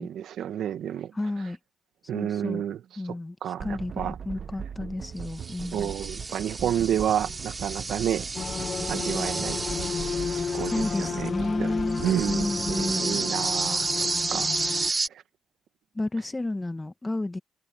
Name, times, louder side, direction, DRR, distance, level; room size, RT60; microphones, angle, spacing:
voice 1, 0.0-1.1 2.1-2.8 3.4-4.1 5.7-8.3 8.9-9.6 10.3-10.8 11.1-11.3 11.6-11.7 12.0-14.9, right 10 dB, 75° right, 1.7 m, -30 dB
voice 2, 1.1-1.6 2.1-2.6 3.0-5.9 10.7-13.3 15.9-17.4, left 2 dB, 15° left, 1.4 m, -31 dB
sound 1, 3.6-13.0, right 7 dB, 50° right, 1.1 m, -39 dB
sound 2, 5.2-11.3 11.9-15.1, right 3 dB, 25° right, 2.9 m, -31 dB
sound 3, 8.3-14.9, left 6 dB, 40° left, 0.5 m, -33 dB
cardioid pair, 90°, 0 cm